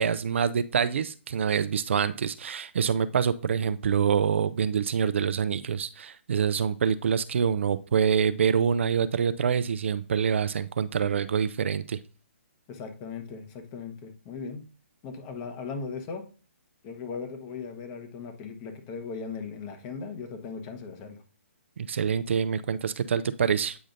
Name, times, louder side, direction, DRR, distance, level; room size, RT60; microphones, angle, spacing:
voice 1, 0.0-12.0 21.8-23.8, right 7 dB, 65° right, 12 dB, 0.5 m, -26 dB
voice 2, 12.7-14.6 15.0-16.2 16.8-21.2, left 5 dB, 30° left, 6 dB, 1.1 m, -38 dB
8.7 x 5.0 x 2.6 m, 0.38 s
hypercardioid pair, 145°, 7 cm